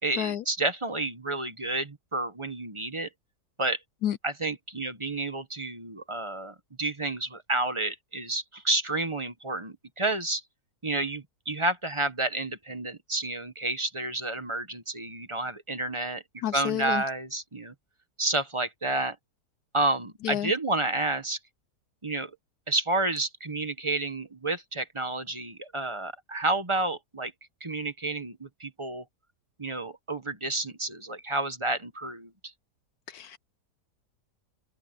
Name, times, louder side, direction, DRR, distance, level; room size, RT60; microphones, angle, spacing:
voice 1, 0.0-3.1 3.6-3.8 4.2-10.4 10.8-17.7 18.2-19.1 19.7-21.4 22.0-22.3 22.7-27.3 27.6-29.0 29.6-32.5, right 2 dB, 20° right, 1.2 m, -30 dB
voice 2, 16.4-17.0 20.3-20.5 33.1-33.4, left 11 dB, 75° left, 1.1 m, -29 dB
open air
omnidirectional pair, 1.7 m